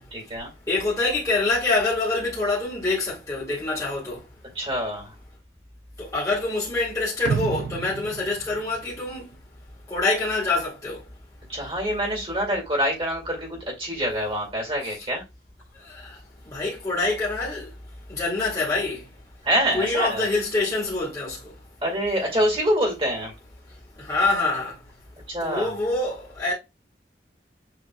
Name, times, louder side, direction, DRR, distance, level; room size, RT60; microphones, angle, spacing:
voice 1, 0.1-0.5 4.5-5.1 11.5-15.2 19.4-20.2 21.8-23.3 25.3-25.7, equal, 30° right, 2.2 m, -25 dB
voice 2, 0.7-4.2 6.0-9.3 9.9-11.0 14.8-14.9 15.8-16.2 16.5-17.7 18.1-19.0 19.7-21.4 24.0-24.8 25.4-26.5, left 3 dB, 20° left, 1.9 m, -25 dB
sound 1, 7.3-9.4 9.8-9.9, right 6 dB, 80° right, 0.3 m, -31 dB
6.8 x 3.1 x 2.3 m
head